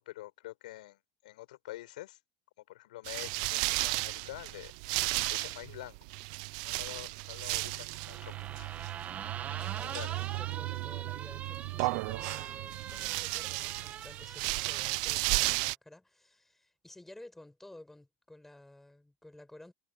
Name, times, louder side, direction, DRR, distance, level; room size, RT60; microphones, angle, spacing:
voice 1, 0.0-2.2 2.7-4.7 5.0-6.0 6.6-8.7 9.8-10.1, left 16 dB, 85° left, 6.3 m, -47 dB
sound 1, 3.0-15.8, right 26 dB, 70° right, 0.6 m, -34 dB
sound 2, 8.0-15.0, right 9 dB, 35° right, 2.0 m, -43 dB
voice 2, 9.5-19.7, left 1 dB, 5° left, 5.7 m, -53 dB
supercardioid pair, 105°, 4 cm